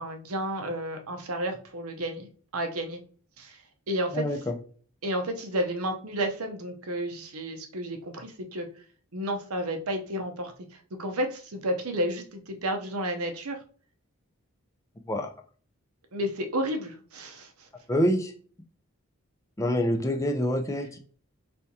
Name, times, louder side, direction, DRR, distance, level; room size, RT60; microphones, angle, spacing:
voice 1, 0.0-3.0 3.4-3.6 3.9-4.3 5.0-8.7 9.1-10.5 11.0-13.6 16.1-17.7, right 1 dB, 90° right, 5 dB, 0.8 m, -31 dB
voice 2, 4.1-4.5 15.1-15.3 17.9-18.3 19.6-21.0, equal, 15° left, 4 dB, 0.5 m, -26 dB
4.3 x 3.5 x 2.7 m, 0.44 s
head